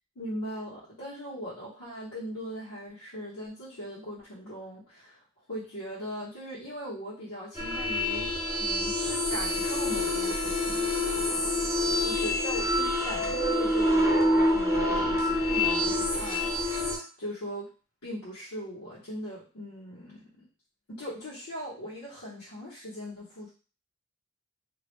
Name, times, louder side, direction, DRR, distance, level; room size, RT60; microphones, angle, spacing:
voice 1, 0.2-5.2 5.5-8.3 8.6-11.7 12.0-17.7 18.0-20.4 20.9-23.5, equal, 90° left, -9 dB, 0.9 m, -40 dB
sound 1, 7.5-17.0, left 1 dB, 10° right, 0.4 m, -27 dB
2.3 x 2.1 x 3.0 m, 0.37 s
head